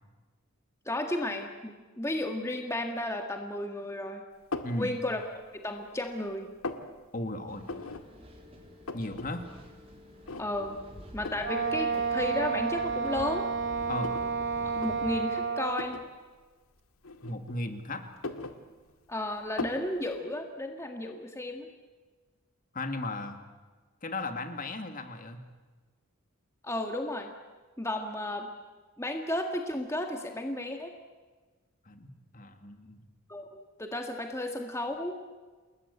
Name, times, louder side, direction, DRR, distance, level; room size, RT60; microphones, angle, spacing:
voice 1, 0.9-4.2 4.7-5.2 5.6-6.5 10.4-10.8 11.1-13.5 14.8-16.0 19.1-21.7 26.6-27.3 27.8-28.5 29.0-30.9 33.3-35.3, left 1 dB, 15° left, 4 dB, 1.7 m, -33 dB
sound 1, 4.5-4.8 5.4-6.0 6.3-6.9 7.6-8.0 8.4-8.5 8.6-9.3 9.6-9.7 10.3-10.7 11.2-11.5 12.4-12.5 13.0-14.3 14.7-14.9 15.7-16.1 17.0-17.7 18.1-19.1 19.6-19.9, left 3 dB, 80° left, 2.0 m, -38 dB
voice 2, 7.1-7.7 8.9-9.5 13.9-14.2 17.2-18.0 22.7-23.4 24.0-25.4 31.8-33.0, left 2 dB, 40° left, 6 dB, 2.2 m, -36 dB
sound 2, 7.5-15.2, equal, 25° right, 3.9 m, -48 dB
Wind instrument woodwind instrument, 11.4-15.9, right 5 dB, 60° right, 2.0 m, -31 dB
29.0 x 21.0 x 8.3 m, 1.3 s
head